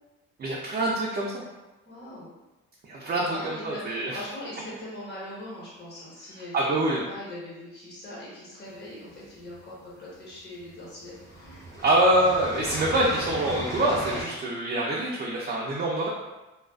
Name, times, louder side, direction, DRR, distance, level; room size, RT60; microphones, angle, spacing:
voice 1, 0.4-1.4 2.8-4.2 6.5-7.0 11.8-16.1, right 1 dB, 30° right, -4 dB, 0.4 m, -25 dB
voice 2, 1.8-2.3 3.1-11.7 13.0-13.4, left 1 dB, 35° left, -7 dB, 1.1 m, -41 dB
sound 1, 8.9-9.7 10.6-10.7 11.0-14.2, equal, 10° left, 0.7 m, -37 dB
2.4 x 2.3 x 2.3 m, 1.1 s
cardioid pair, 90°, 30 cm